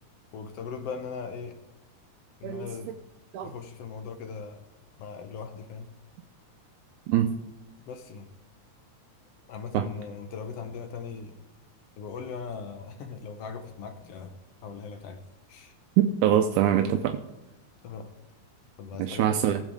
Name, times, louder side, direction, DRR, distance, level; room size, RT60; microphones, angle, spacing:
voice 1, 0.3-1.6 2.4-2.9 3.4-4.6 5.0-5.9 7.9-8.3 9.5-11.4 12.0-15.7 17.8-18.1 18.8-19.3, left 5 dB, 70° left, 7 dB, 1.6 m, -39 dB
voice 2, 16.0-17.2 19.0-19.6, right 10 dB, 85° right, 5 dB, 2.1 m, -23 dB
17.0 x 7.3 x 3.5 m, 1.0 s
omnidirectional pair, 3.5 m